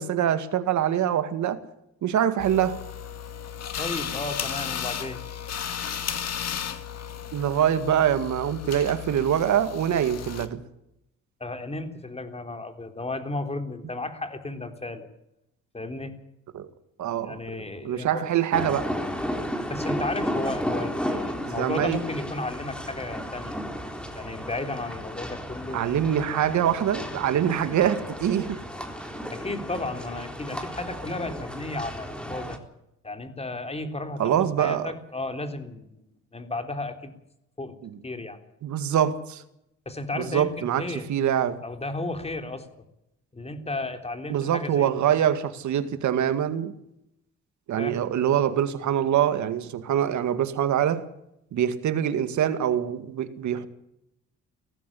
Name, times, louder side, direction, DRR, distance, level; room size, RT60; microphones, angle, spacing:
voice 1, 0.0-1.6 2.0-2.8 7.3-10.6 16.5-16.7 17.0-17.4 17.8-18.9 21.5-22.0 25.7-28.6 34.2-34.9 37.8-38.0 38.6-39.4 40.2-41.6 44.3-46.7 47.7-51.0 51.5-53.7, right 10 dB, 70° right, 11 dB, 2.1 m, -24 dB
sound 1, 2.4-10.5, left 8 dB, 55° left, 2.2 m, -34 dB
voice 2, 3.8-5.2 11.4-15.1 15.7-16.1 17.2-18.3 19.7-23.6 24.1-26.0 29.3-32.6 33.0-36.0 36.3-37.1 37.6-37.7 38.0-38.4 39.9-41.1 41.6-42.7 43.3-44.9 47.8-48.0, left 2 dB, 20° left, 7 dB, 3.5 m, -33 dB
sound 2, 18.5-32.6, equal, 5° left, 3.8 m, -33 dB
18.0 x 15.0 x 9.9 m, 0.82 s
cardioid pair, 90°, 30 cm